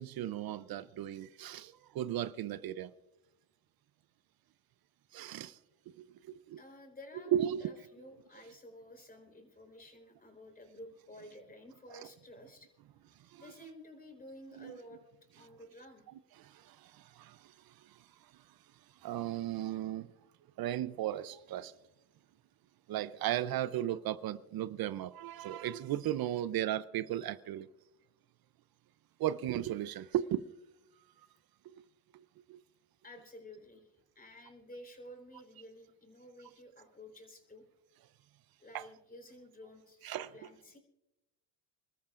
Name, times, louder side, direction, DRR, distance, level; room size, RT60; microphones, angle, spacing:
voice 1, 0.0-2.9 5.1-5.6 6.0-6.6 7.3-7.6 11.9-12.1 13.2-13.4 14.6-14.7 16.4-18.6 19.0-20.1 20.6-21.7 22.9-27.7 29.2-30.5 31.6-31.8 32.1-32.6 38.7-38.8 40.0-40.5, right 12 dB, 50° right, 0.7 m, -36 dB
voice 2, 6.6-7.3 7.6-12.7 13.4-15.0 15.4-16.0 33.0-33.9 34.1-37.6 38.6-40.8, left 1 dB, 20° left, 4.2 m, -52 dB
29.5 x 13.5 x 2.5 m
supercardioid pair, 90°, 47 cm